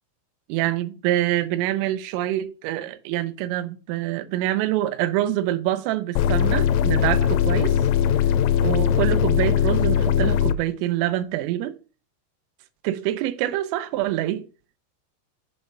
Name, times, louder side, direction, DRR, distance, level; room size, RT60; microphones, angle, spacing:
voice 1, 0.5-7.8 8.6-11.8 12.8-14.5, right 14 dB, 90° right, 3.4 m, -25 dB
sound 1, 6.2-10.6, left 9 dB, 90° left, 3.3 m, -20 dB
7.7 x 5.2 x 5.9 m
omnidirectional pair, 5.7 m